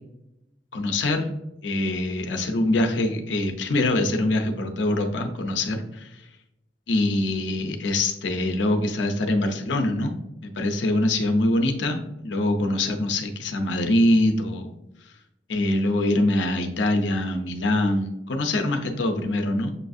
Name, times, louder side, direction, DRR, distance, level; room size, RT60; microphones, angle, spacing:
voice 1, 0.7-1.3 1.6-6.1 6.9-10.1 10.4-14.7 15.5-19.7, left 1 dB, 85° left, 4 dB, 0.6 m, -24 dB
6.8 x 2.6 x 2.4 m, 0.87 s
head